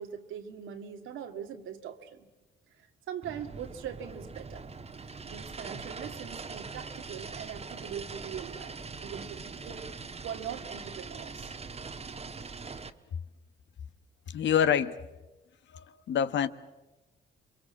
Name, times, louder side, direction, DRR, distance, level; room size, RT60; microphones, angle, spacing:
voice 1, 0.0-2.3 3.1-4.7 5.3-9.9 10.2-11.5, right 8 dB, 85° right, 2.1 m, -41 dB
sound 1, 3.2-12.9, right 4 dB, 30° right, 1.4 m, -42 dB
voice 2, 14.3-15.0 15.7-16.5, left 8 dB, 65° left, 1.2 m, -26 dB
27.5 x 23.0 x 7.4 m
cardioid pair, 90°, 20 cm